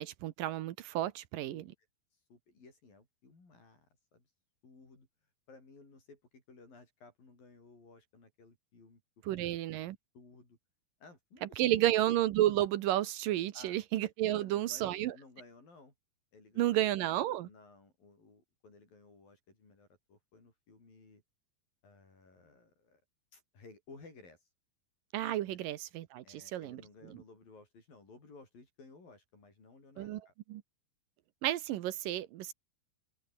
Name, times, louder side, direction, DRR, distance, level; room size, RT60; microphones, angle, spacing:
voice 1, 0.0-1.7 9.3-10.0 11.4-15.2 16.6-17.5 25.1-26.8 30.0-30.2 30.5-30.6 31.4-32.5, right 13 dB, 75° right, 2.5 m, -31 dB
voice 2, 2.3-3.9 4.1-4.3 4.6-5.1 5.5-9.0 9.3-9.5 10.1-10.6 11.0-12.1 13.5-13.8 14.3-15.9 16.3-16.8 17.4-21.2 21.8-23.0 23.3-24.5 25.4-25.6 26.2-30.3, left 3 dB, 65° left, 9.8 m, -57 dB
open air
omnidirectional pair, 4.3 m